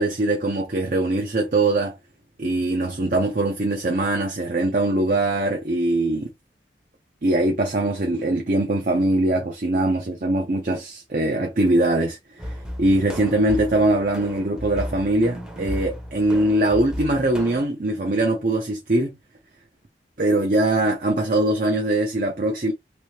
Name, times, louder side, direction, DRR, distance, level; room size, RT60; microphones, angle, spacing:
voice 1, 0.0-2.0 2.4-6.3 7.2-19.2 20.2-22.7, right 2 dB, 45° right, 0.6 m, -22 dB
sound 1, 12.4-17.7, equal, 5° right, 0.7 m, -34 dB
3.0 x 2.7 x 3.0 m
head